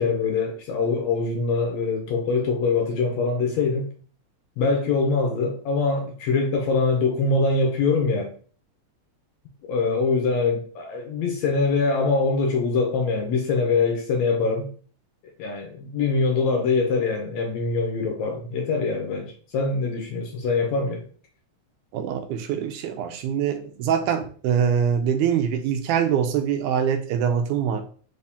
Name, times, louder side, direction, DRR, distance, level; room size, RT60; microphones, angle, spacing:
voice 1, 0.0-3.9 4.6-8.3 9.7-14.7 15.4-21.0, left 4 dB, 75° left, 1.8 m, -23 dB
voice 2, 21.9-27.8, right 8 dB, 80° right, 2.0 m, -24 dB
4.9 x 2.7 x 3.5 m
omnidirectional pair, 3.5 m